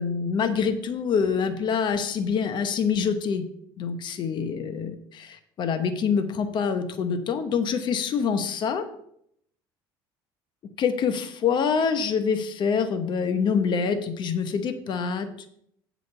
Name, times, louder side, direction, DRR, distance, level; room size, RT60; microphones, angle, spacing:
voice 1, 0.0-3.4 3.8-8.8 10.8-15.3, left 6 dB, 50° left, 9 dB, 1.0 m, -26 dB
7.7 x 5.2 x 7.0 m, 0.70 s
cardioid pair, 105°, 10 cm